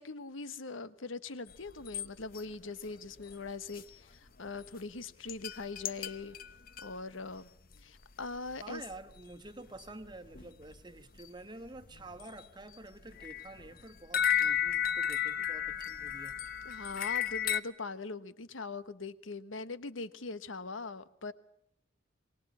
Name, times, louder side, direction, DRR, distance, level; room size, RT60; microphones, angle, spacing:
voice 1, 0.0-6.4 6.8-7.5 7.8-8.8 16.6-21.3, left 3 dB, 80° left, 1.1 m, -41 dB
sound 1, 1.5-2.1 2.3-2.4 2.8-2.9 3.2-3.8 4.3-4.4 4.6-4.8 5.3-6.9 7.7-7.8 8.0-8.2 8.5-8.6 8.9-9.2 9.5-9.6 9.8-10.8 11.2-11.3 11.6-12.4 12.8-17.6, left 9 dB, 45° left, 0.9 m, -33 dB
voice 2, 8.6-16.4, right 2 dB, 20° right, 1.3 m, -49 dB
23.5 x 19.5 x 8.4 m
head